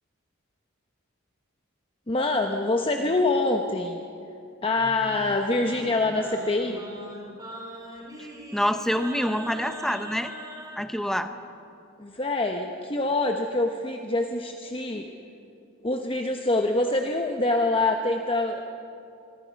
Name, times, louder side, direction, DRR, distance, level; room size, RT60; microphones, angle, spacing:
voice 1, 2.1-4.0 4.6-6.8 12.0-15.1 15.8-18.6, left 2 dB, 25° left, 3 dB, 1.0 m, -25 dB
Singing, 4.7-10.8, equal, 20° right, 3.3 m, -41 dB
voice 2, 8.2-10.3 10.8-11.3, equal, ahead, 8 dB, 0.8 m, -27 dB
25.0 x 24.0 x 5.3 m, 2.7 s
head